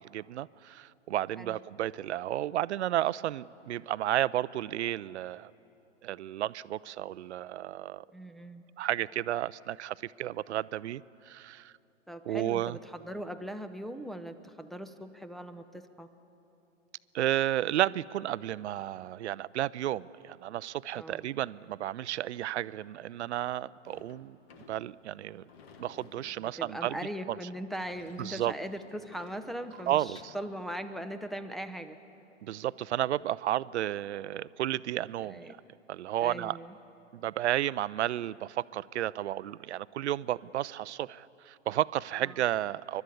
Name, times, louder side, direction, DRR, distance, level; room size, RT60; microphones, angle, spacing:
voice 1, 0.0-5.5 6.0-8.0 8.8-11.7 12.3-12.8 17.1-24.4 24.7-25.4 25.8-27.0 27.3-27.4 28.2-28.5 29.9-30.3 32.4-35.4 35.9-36.6 37.1-43.0, right 13 dB, 65° right, 19 dB, 0.5 m, -32 dB
voice 2, 8.1-8.6 12.1-16.1 20.9-21.2 26.4-32.0 35.3-35.5 36.2-36.7 42.2-42.4, equal, ahead, 5 dB, 0.6 m, -40 dB
Sliding door / Slam, 23.8-30.5, left 5 dB, 55° left, 1.7 m, -57 dB
29.5 x 12.0 x 8.4 m, 2.9 s
figure-of-eight pair, 110°, 37 cm